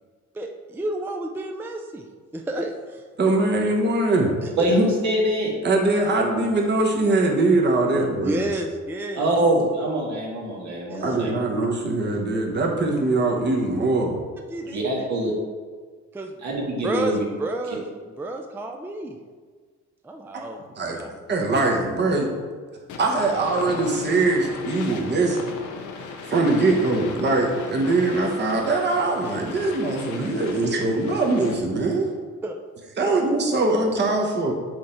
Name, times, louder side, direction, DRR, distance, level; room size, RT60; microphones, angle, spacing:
voice 1, 0.3-2.1 2.3-3.0 4.4-4.7 8.2-9.3 10.9-11.2 14.5-15.1 16.1-19.2 20.0-21.1 32.4-32.6 33.0-33.3, right 1 dB, 5° right, 3 dB, 0.4 m, -31 dB
voice 2, 3.2-4.3 5.6-8.5 11.0-14.2 20.8-21.0 21.3-22.3 23.0-25.4 26.0-32.1 33.0-34.5, right 2 dB, 35° right, 0 dB, 1.0 m, -22 dB
voice 3, 4.6-5.5 9.2-11.3 14.7-15.3 16.4-17.2, right 1 dB, 65° right, -2 dB, 1.8 m, -23 dB
sound 1, 22.9-31.8, left 4 dB, 85° left, 0.8 m, -37 dB
6.3 x 3.8 x 4.3 m, 1.5 s
cardioid pair, 90°, 30 cm